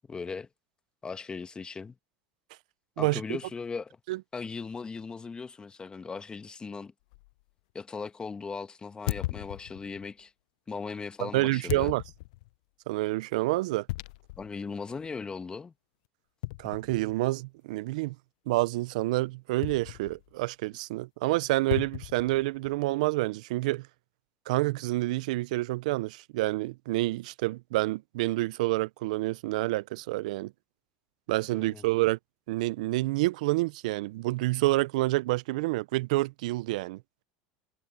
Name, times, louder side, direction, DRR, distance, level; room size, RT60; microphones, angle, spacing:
voice 1, 0.1-0.5 1.0-2.0 3.0-4.0 4.3-6.9 7.7-10.3 10.7-11.9 14.4-15.7 31.5-31.8, left 5 dB, 20° left, 1.4 m, -38 dB
sound 1, 7.1-7.3 9.1-10.1 11.7-12.5 13.9-14.5 15.0-15.1 16.4-17.3 19.6-20.4 21.7-22.8, left 20 dB, 70° left, 0.5 m, -37 dB
voice 2, 11.2-12.0 12.9-13.9 16.6-18.1 18.5-23.8 24.5-30.5 31.3-32.2 32.5-37.0, right 19 dB, 75° right, 0.6 m, -28 dB
hypercardioid pair, 90°, 4 cm